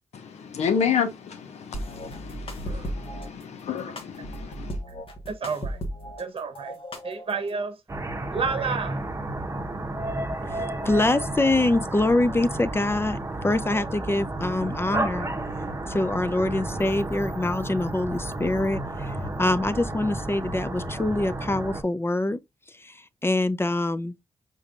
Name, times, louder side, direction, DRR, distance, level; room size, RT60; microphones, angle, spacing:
voice 1, 0.1-4.8, left 7 dB, 80° left, 1.0 m, -30 dB
sound 1, 1.7-3.3 4.0-6.2 6.5-7.5, equal, 55° left, 1.3 m, -35 dB
voice 2, 5.3-5.8 6.2-7.8 8.3-9.0 13.7-13.9, right 5 dB, 55° right, 0.9 m, -31 dB
sound 2, 7.9-21.8, right 2 dB, 25° right, 0.9 m, -32 dB
voice 3, 10.4-13.2 13.4-15.3 15.9-22.4 22.8-24.1, left 2 dB, 20° left, 0.5 m, -25 dB
5.0 x 4.0 x 2.4 m
supercardioid pair, 45°, 11 cm